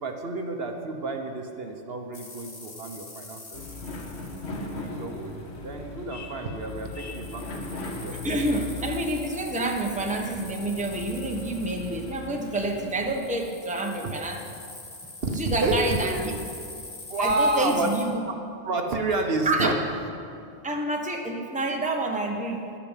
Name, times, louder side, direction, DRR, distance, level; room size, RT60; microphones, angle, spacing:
voice 1, 0.0-3.6 4.4-8.2 14.0-14.4 15.2-16.2 17.1-17.9 18.2-18.3 18.6-19.8, right 2 dB, 60° right, 4 dB, 1.1 m, -30 dB
sound 1, 2.1-5.5 6.6-18.0, left 2 dB, 45° left, 2.0 m, -44 dB
sound 2, 3.5-13.2, left 3 dB, 70° left, 1.4 m, -38 dB
voice 2, 8.2-14.4 15.3-16.3 17.2-18.2 19.4-19.7 20.6-22.6, right 2 dB, 5° right, 1 dB, 1.0 m, -28 dB
11.0 x 8.8 x 7.3 m, 2.5 s
omnidirectional pair, 1.2 m